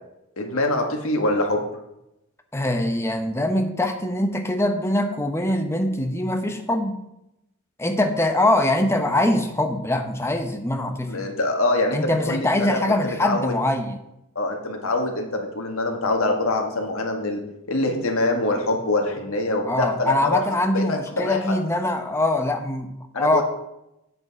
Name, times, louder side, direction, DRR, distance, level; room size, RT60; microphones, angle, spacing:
voice 1, 0.4-1.6 11.1-13.5 14.4-17.4 17.7-20.4 20.7-21.4 23.1-23.4, left 2 dB, 80° left, 2 dB, 1.8 m, -24 dB
voice 2, 2.5-7.0 7.8-11.3 11.9-14.0 19.6-23.4, left 1 dB, 10° left, 5 dB, 0.9 m, -23 dB
8.2 x 8.0 x 4.8 m, 0.87 s
head